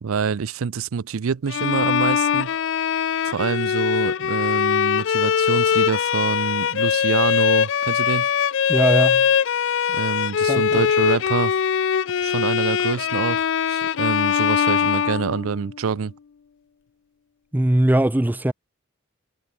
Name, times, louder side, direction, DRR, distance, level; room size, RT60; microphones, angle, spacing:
voice 1, 0.0-2.5 3.2-8.3 9.9-11.5 12.2-16.1, right 6 dB, 90° right, 0.5 m, -26 dB
Bowed string instrument, 1.5-15.8, left 8 dB, 65° left, 0.4 m, -21 dB
voice 2, 8.7-9.3 10.5-10.8 17.5-18.5, right 1 dB, 10° right, 0.4 m, -20 dB
head